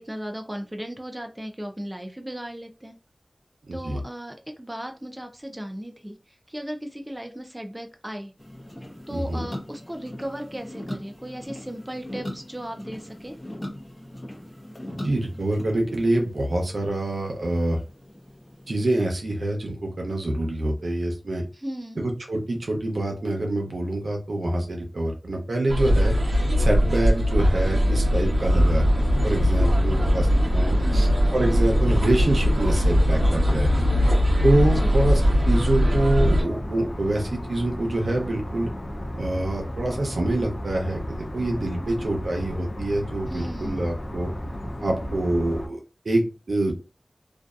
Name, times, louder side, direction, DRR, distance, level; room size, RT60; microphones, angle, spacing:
voice 1, 0.0-3.0 3.7-6.1 6.5-8.3 9.1-13.4 21.5-22.0 30.8-31.1 34.7-34.9 43.3-43.9, equal, 15° right, 4 dB, 0.4 m, -36 dB
voice 2, 3.7-4.0 9.1-9.4 14.9-17.8 18.7-21.4 22.0-26.1 26.6-31.1 31.3-33.8 34.4-38.7 39.2-44.3 44.8-45.8 46.1-46.7, right 1 dB, 85° right, 1 dB, 0.7 m, -26 dB
sound 1, 8.4-19.0, left 1 dB, 25° left, 0.8 m, -40 dB
sound 2, 25.7-36.4, equal, 55° right, 0.9 m, -20 dB
sound 3, 28.3-45.7, equal, 50° left, 0.4 m, -34 dB
2.6 x 2.3 x 2.2 m, 0.31 s
wide cardioid pair, 65°, 0 cm